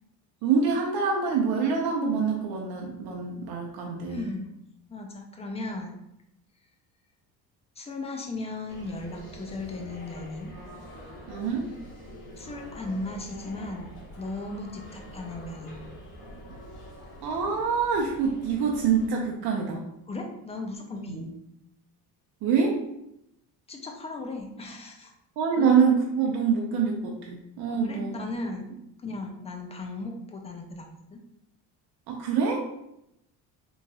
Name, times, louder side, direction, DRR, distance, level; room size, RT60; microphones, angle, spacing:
voice 1, 0.4-4.3 11.3-11.7 17.2-19.8 21.1-21.3 22.4-22.8 25.4-28.2 32.1-32.6, right 6 dB, 70° right, -1 dB, 0.6 m, -25 dB
voice 2, 4.1-4.5 4.9-6.0 7.8-10.5 12.4-15.8 20.1-21.2 23.7-25.1 25.6-25.7 27.7-28.7 29.0-31.2, left 2 dB, 15° left, 2 dB, 0.4 m, -36 dB
sound 1, 8.7-19.1, equal, 50° left, 1.0 m, -45 dB
3.0 x 2.7 x 2.3 m, 0.81 s
cardioid pair, 110°, 39 cm